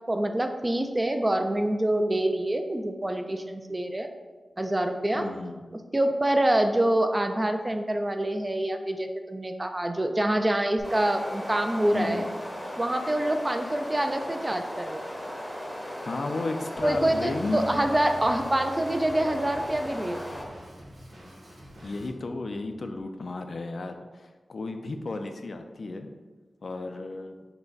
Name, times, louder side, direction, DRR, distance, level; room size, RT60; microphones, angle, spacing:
voice 1, 0.0-4.1 4.6-5.3 5.9-12.3 12.8-15.1 16.8-20.2, right 1 dB, 20° right, 6 dB, 0.3 m, -26 dB
voice 2, 5.1-5.7 11.9-12.3 16.0-17.8 21.8-26.1 26.6-27.5, left 2 dB, 60° left, 6 dB, 0.4 m, -33 dB
sound 1, 10.8-20.4, equal, 15° left, 0.7 m, -37 dB
Bass guitar, 16.8-23.0, left 1 dB, 70° right, 1.0 m, -49 dB
Drum kit, 16.9-22.1, equal, 85° right, 1.3 m, -48 dB
5.7 x 2.1 x 3.9 m, 1.3 s
wide cardioid pair, 100°, 0 cm